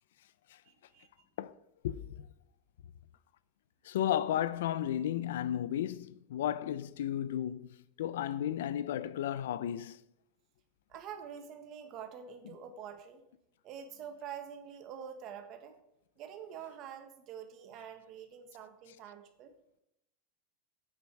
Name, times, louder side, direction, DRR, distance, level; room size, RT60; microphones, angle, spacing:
voice 1, 0.6-1.1 10.9-13.2 13.6-15.8 16.2-19.5, right 8 dB, 35° right, 1.4 m, -46 dB
voice 2, 1.8-2.3 3.8-10.0, left 11 dB, 85° left, 0.6 m, -34 dB
10.5 x 8.9 x 4.8 m
supercardioid pair, 170°, 0 cm